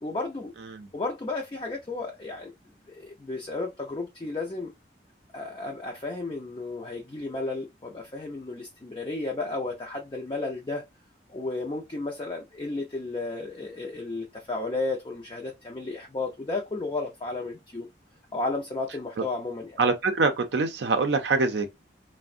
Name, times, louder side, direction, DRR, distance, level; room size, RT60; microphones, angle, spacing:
voice 1, 0.0-0.5 0.9-2.5 2.9-4.7 5.3-10.9 11.3-17.9 18.3-19.8, left 2 dB, 25° left, 0.4 m, -33 dB
voice 2, 19.8-21.7, right 4 dB, 80° right, 0.4 m, -24 dB
3.4 x 2.1 x 2.4 m
head